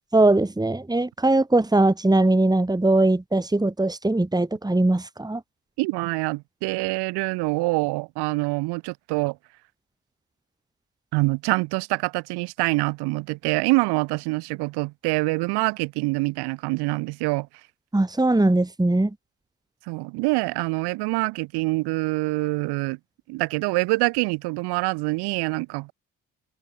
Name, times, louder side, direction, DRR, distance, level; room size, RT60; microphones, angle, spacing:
voice 1, 0.1-5.4 17.9-19.1, right 2 dB, 10° right, 1.6 m, -20 dB
voice 2, 5.8-9.4 11.1-17.5 19.9-23.0 23.3-25.9, right 24 dB, 85° right, 2.6 m, -25 dB
hypercardioid pair, 45°, 39 cm